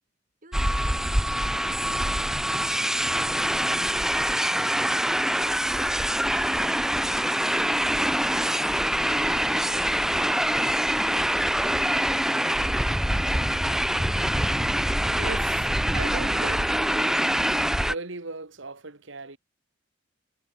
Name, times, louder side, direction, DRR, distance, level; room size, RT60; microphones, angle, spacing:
voice 1, 0.4-1.6 2.0-3.3 3.7-4.5 4.8-5.8 6.4-7.3 7.7-9.0, right 2 dB, 40° right, 3.6 m, -51 dB
sound 1, 0.5-17.9, right 1 dB, ahead, 0.6 m, -24 dB
voice 2, 15.1-19.4, right 3 dB, 70° right, 1.7 m, -38 dB
head